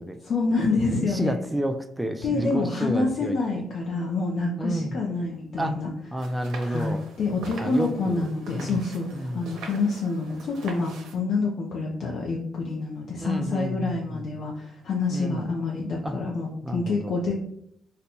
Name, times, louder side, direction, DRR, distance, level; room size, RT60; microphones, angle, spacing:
voice 1, 0.3-1.3 2.2-5.9 6.6-17.3, left 3 dB, 60° left, -2 dB, 0.5 m, -27 dB
voice 2, 1.0-3.4 4.6-5.0 5.6-5.9 6.1-7.0 7.6-8.3 8.5-8.8 9.1-9.5 13.2-14.3 15.1-15.5 16.0-16.2 16.6-17.2, right 1 dB, 10° right, 6 dB, 0.3 m, -30 dB
sound 1, 6.2-11.2, right 3 dB, 80° right, 0.7 m, -43 dB
4.0 x 2.2 x 2.8 m, 0.71 s
cardioid pair, 90°, 0 cm